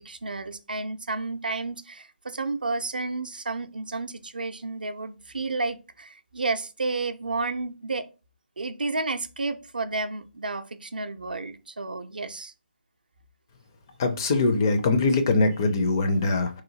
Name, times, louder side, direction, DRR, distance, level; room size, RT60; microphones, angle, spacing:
voice 1, 0.0-8.1 8.6-12.5, right 3 dB, 60° right, 0.4 m, -31 dB
voice 2, 14.0-16.5, left 3 dB, 20° left, 0.4 m, -22 dB
2.9 x 2.4 x 2.7 m
figure-of-eight pair, 150°, 6 cm